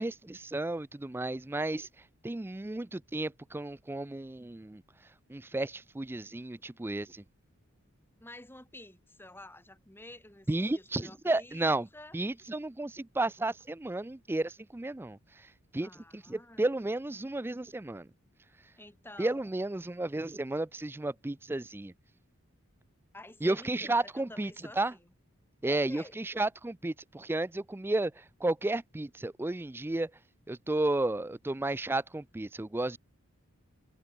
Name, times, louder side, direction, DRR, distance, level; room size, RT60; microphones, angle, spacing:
voice 1, 0.0-1.9 2.2-4.8 5.3-7.2 10.5-11.9 12.1-15.5 15.7-18.1 19.2-21.9 23.4-24.9 25.6-30.1 30.5-33.0, right 2 dB, 10° right, 0.4 m, -33 dB
voice 2, 8.2-12.2 15.8-16.7 18.8-19.5 23.1-25.1 25.7-26.2, left 1 dB, 10° left, 2.1 m, -50 dB
open air
head